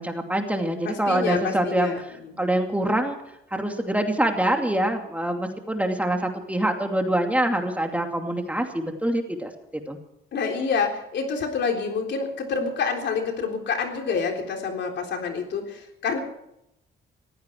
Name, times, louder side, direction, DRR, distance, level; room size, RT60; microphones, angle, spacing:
voice 1, 0.0-1.9 2.4-3.2 3.5-9.5 9.9-10.0, right 1 dB, 5° right, 4 dB, 2.5 m, -25 dB
voice 2, 0.8-2.4 10.3-16.2, left 5 dB, 65° left, 3 dB, 3.6 m, -28 dB
19.0 x 15.5 x 4.6 m, 0.81 s
cardioid pair, 90°, 20 cm